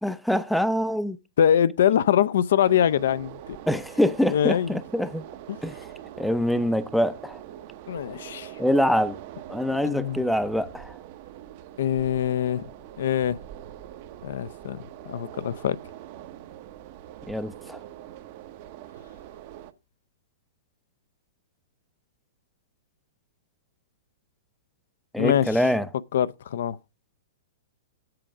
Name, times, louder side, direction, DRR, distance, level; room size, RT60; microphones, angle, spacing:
voice 1, 0.0-1.2 3.7-5.2 5.6-5.9 6.2-7.4 8.6-9.2 9.5-11.0 17.3-17.8 25.1-25.9, equal, ahead, 0.5 m, -24 dB
voice 2, 1.4-3.4 4.3-4.8 5.5-5.6 7.9-8.5 9.9-10.2 11.8-12.7 13.0-13.4 14.2-14.8 15.1-15.8 25.2-25.5 26.1-26.8, left 9 dB, 70° left, 0.4 m, -23 dB
sound 1, 2.7-19.7, right 12 dB, 45° right, 0.8 m, -43 dB
7.7 x 4.8 x 7.0 m
hypercardioid pair, 150°, 0 cm